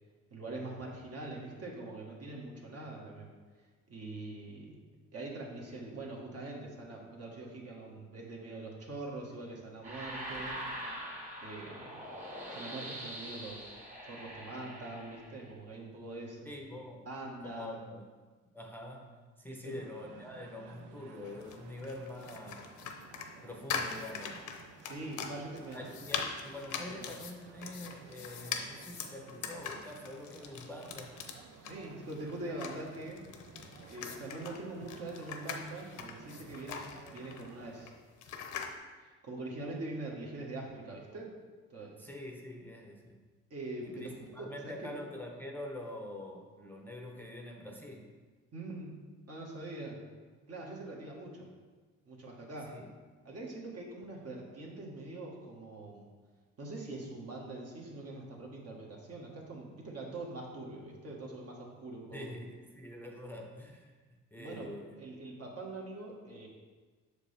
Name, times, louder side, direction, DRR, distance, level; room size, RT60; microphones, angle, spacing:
voice 1, 0.3-3.3 3.9-4.8 5.1-10.6 11.4-12.0 12.5-13.7 14.0-16.4 17.0-17.8 19.5-19.7 24.8-25.8 26.9-27.0 31.6-33.2 33.9-37.9 38.2-38.5 39.0-41.3 41.7-42.0 43.5-44.9 48.5-49.0 49.3-50.0 50.5-51.5 52.0-52.8 53.2-56.1 56.6-62.3 64.3-66.5, right 2 dB, 55° right, -2 dB, 1.5 m, -43 dB
sound 1, 9.8-15.5, right 1 dB, 25° right, 1.8 m, -43 dB
voice 2, 16.4-18.1 18.5-22.7 23.4-24.5 25.7-31.2 42.0-43.2 43.8-48.1 52.7-52.9 62.1-65.0, left 1 dB, 5° left, 1 dB, 0.6 m, -45 dB
sound 2, 19.7-37.9, right 7 dB, 90° right, 0.5 m, -55 dB
sound 3, 21.2-38.8, left 6 dB, 75° left, 0.7 m, -42 dB
6.5 x 5.0 x 3.3 m, 1.4 s
cardioid pair, 90°, 30 cm